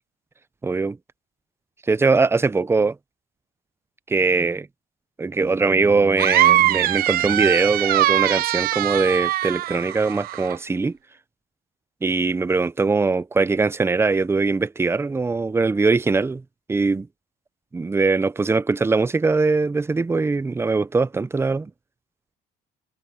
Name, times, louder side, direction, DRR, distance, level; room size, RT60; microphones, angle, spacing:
voice 1, 0.6-1.0 1.9-3.0 4.1-4.7 5.2-11.0 12.0-16.4 16.7-17.1 17.7-21.7, right 4 dB, 15° right, 0.6 m, -21 dB
sound 1, 6.2-10.6, right 14 dB, 60° right, 0.4 m, -21 dB
cardioid pair, 110°, 17 cm